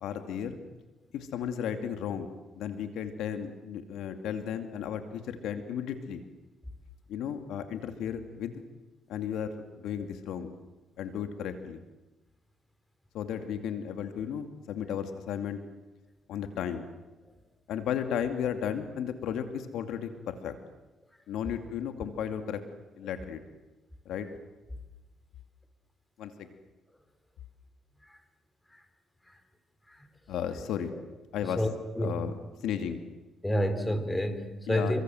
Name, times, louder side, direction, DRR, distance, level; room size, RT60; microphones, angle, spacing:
voice 1, 0.0-0.6 1.1-2.3 2.6-6.2 7.1-8.6 9.1-10.5 11.0-11.8 13.1-15.6 16.3-16.9 17.7-20.5 21.3-22.6 23.0-23.4 24.1-24.3 26.2-26.5 30.3-30.9 31.3-31.6 32.0-33.0 34.7-35.0, left 8 dB, 85° left, 7 dB, 2.4 m, -34 dB
voice 2, 31.4-32.3 33.4-35.0, equal, 10° left, 9 dB, 4.0 m, -30 dB
29.5 x 24.5 x 7.8 m, 1.0 s
cardioid pair, 90°, 0 cm